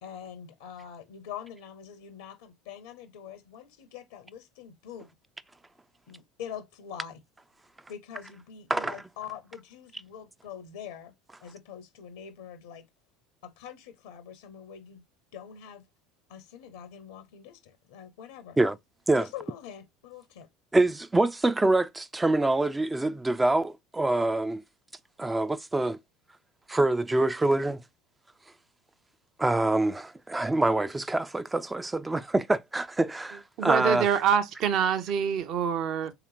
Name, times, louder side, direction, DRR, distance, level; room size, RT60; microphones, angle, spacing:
voice 1, 0.0-5.1 6.1-7.2 7.9-11.1 11.4-12.8 13.4-15.0 15.3-15.9 16.3-18.6 19.1-20.5, left 8 dB, 70° left, 0.6 m, -44 dB
voice 2, 20.7-24.6 25.2-26.0 26.7-27.8 29.4-34.1, right 2 dB, 15° right, 0.3 m, -25 dB
voice 3, 33.6-36.1, right 8 dB, 50° right, 0.6 m, -25 dB
3.4 x 2.8 x 3.1 m
hypercardioid pair, 70°, 0 cm